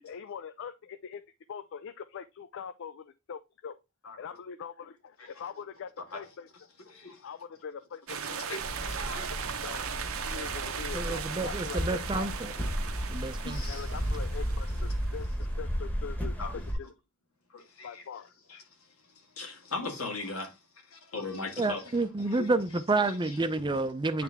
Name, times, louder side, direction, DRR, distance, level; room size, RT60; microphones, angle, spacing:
voice 1, 0.1-1.2 1.5-3.8 4.2-6.5 7.2-8.6 9.3-12.3 13.7-15.3 15.6-16.9 17.8-18.3, left 7 dB, 60° left, 0.4 m, -43 dB
voice 2, 6.9-7.2 8.2-9.3 13.4-13.9 14.7-14.8 16.4-16.6 17.5-18.0 18.5-21.9 22.2-22.5 23.0-23.4 24.1-24.2, left 3 dB, 90° left, 2.2 m, -40 dB
sound 1, 8.1-15.3, right 7 dB, 70° right, 0.8 m, -38 dB
sound 2, 8.6-16.7, equal, 10° left, 1.2 m, -34 dB
voice 3, 10.9-12.5 13.1-13.6 21.6-24.2, right 3 dB, 20° right, 0.5 m, -29 dB
9.0 x 3.4 x 3.5 m
head